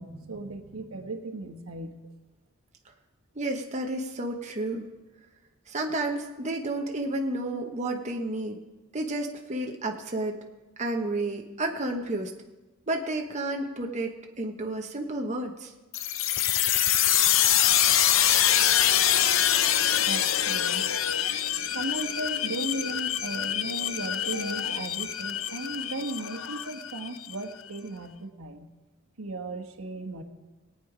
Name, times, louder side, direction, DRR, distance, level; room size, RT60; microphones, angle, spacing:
voice 1, 0.0-2.0 20.0-20.8 21.7-28.7 29.2-30.2, right 2 dB, 85° right, 5 dB, 1.3 m, -36 dB
voice 2, 3.4-4.9 5.7-8.6 8.9-10.3 10.8-12.3 12.9-15.7, right 2 dB, 35° right, 2 dB, 1.0 m, -31 dB
sound 1, 15.9-27.3, left 10 dB, 65° left, 0.6 m, -25 dB
18.5 x 9.0 x 5.0 m, 1.1 s
head